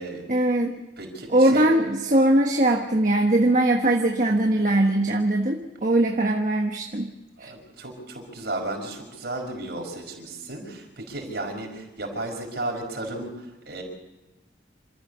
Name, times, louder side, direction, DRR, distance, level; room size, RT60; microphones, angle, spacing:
voice 1, 0.3-0.8 1.3-7.1 7.4-7.5, right 1 dB, 45° right, 2 dB, 1.3 m, -21 dB
voice 2, 1.0-1.7 7.4-13.8, right 2 dB, 60° right, 1 dB, 5.3 m, -34 dB
27.0 x 14.0 x 6.9 m, 1.0 s
head